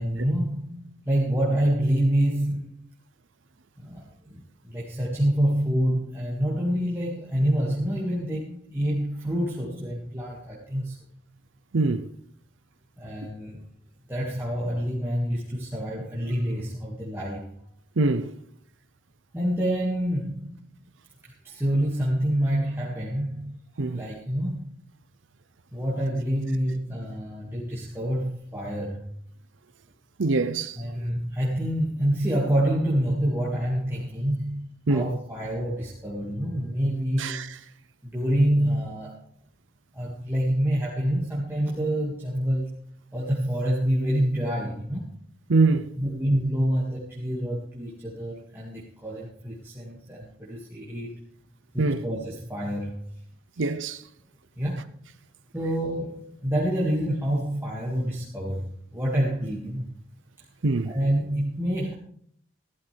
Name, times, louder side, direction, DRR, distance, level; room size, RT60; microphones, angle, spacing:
voice 1, 0.0-2.9 3.8-11.0 13.0-13.6 14.1-17.5 19.3-20.6 21.2-23.5 23.9-24.7 25.7-29.1 30.8-37.5 38.0-39.2 39.9-42.7 43.1-45.2 46.0-51.3 51.7-53.0 54.6-54.9 55.5-59.9 60.4-60.5 60.9-61.9, equal, 10° right, 2.1 m, -27 dB
voice 2, 11.7-12.1 13.2-13.3 18.0-18.3 23.8-24.0 30.2-30.8 34.9-35.1 37.2-37.5 45.5-45.9 51.8-52.0 53.6-54.0 60.6-60.9, right 3 dB, 90° right, 0.7 m, -23 dB
15.0 x 12.0 x 3.4 m
head